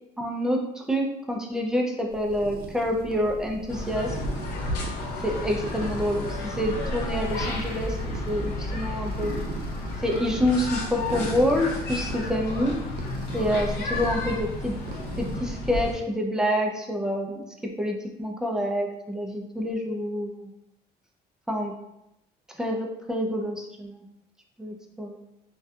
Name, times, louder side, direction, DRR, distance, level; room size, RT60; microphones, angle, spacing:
voice 1, 0.2-4.2 5.2-9.4 10.0-12.8 13.3-14.8 15.2-20.5 21.5-21.7 22.6-24.1 24.6-25.2, equal, 5° right, 1 dB, 0.4 m, -27 dB
sound 1, 2.1-15.4, right 2 dB, 65° right, 0.5 m, -38 dB
sound 2, 3.7-15.9, left 2 dB, 75° left, 0.6 m, -32 dB
2.3 x 2.2 x 2.6 m, 0.86 s
cardioid pair, 110°, 17 cm